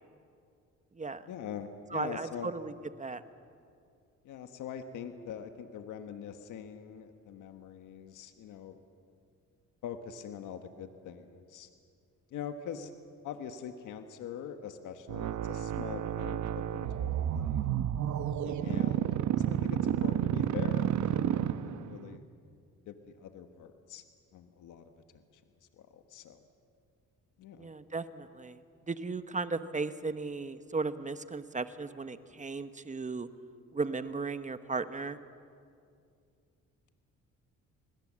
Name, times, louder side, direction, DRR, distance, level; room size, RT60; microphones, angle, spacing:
voice 1, 1.3-2.5 4.2-8.8 9.8-11.7 12.3-12.9 13.2-17.6 18.6-21.2 21.6-22.2 22.9-24.0 24.3-25.4 25.8-26.4 27.4-27.7, left 8 dB, 85° left, 7 dB, 1.5 m, -43 dB
voice 2, 1.9-2.7 3.0-3.2 18.4-18.9 27.6-28.6 28.9-33.3 33.7-35.2, right 4 dB, 25° right, 11 dB, 1.1 m, -36 dB
sound 1, 15.1-22.0, right 10 dB, 70° right, 1.0 m, -31 dB
28.0 x 20.5 x 7.6 m, 2.4 s
cardioid pair, 90°, 30 cm